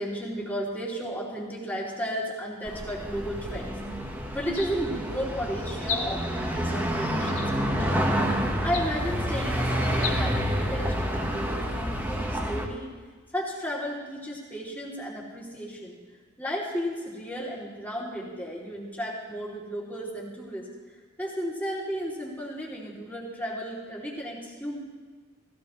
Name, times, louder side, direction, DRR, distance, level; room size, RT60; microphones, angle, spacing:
voice 1, 0.0-3.8 4.3-8.2 8.6-12.9 13.3-16.0 16.4-20.7 21.2-24.8, equal, 10° left, -5 dB, 2.9 m, -33 dB
sound 1, 2.7-12.7, equal, 10° right, 1.3 m, -28 dB
sound 2, 3.5-3.8 4.4-5.1 5.8-6.4 7.3-7.9 8.6-9.2 9.9-10.2, left 5 dB, 70° left, 1.8 m, -36 dB
17.5 x 16.5 x 3.2 m, 1.5 s
head